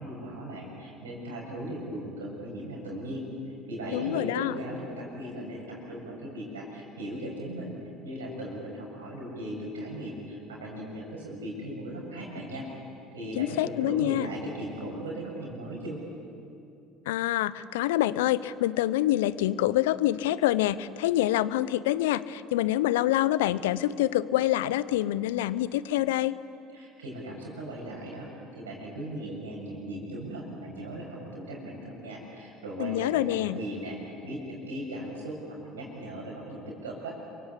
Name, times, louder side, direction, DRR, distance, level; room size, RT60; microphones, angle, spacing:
voice 1, 0.0-3.3 3.7-7.7 8.0-12.7 13.1-16.0 26.7-37.1, right 1 dB, 80° right, -2 dB, 7.3 m, -38 dB
voice 2, 3.9-4.5 13.4-14.3 17.1-26.4 32.8-33.6, left 14 dB, 75° left, 17 dB, 0.7 m, -26 dB
30.0 x 23.5 x 8.3 m, 2.6 s
figure-of-eight pair, 60°, 0 cm